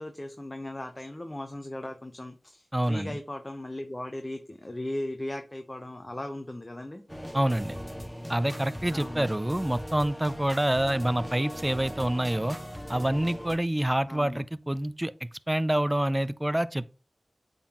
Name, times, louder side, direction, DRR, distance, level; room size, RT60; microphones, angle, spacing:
voice 1, 0.0-7.0 8.9-9.2 14.1-14.4, left 1 dB, 30° left, 0.8 m, -37 dB
voice 2, 2.7-3.2 7.3-7.8 8.3-12.6 12.9-15.1 15.5-17.0, right 1 dB, 20° right, 0.4 m, -27 dB
sound 1, 7.1-13.6, equal, 5° left, 1.6 m, -39 dB
8.4 x 3.9 x 2.9 m
cardioid pair, 40°, 0 cm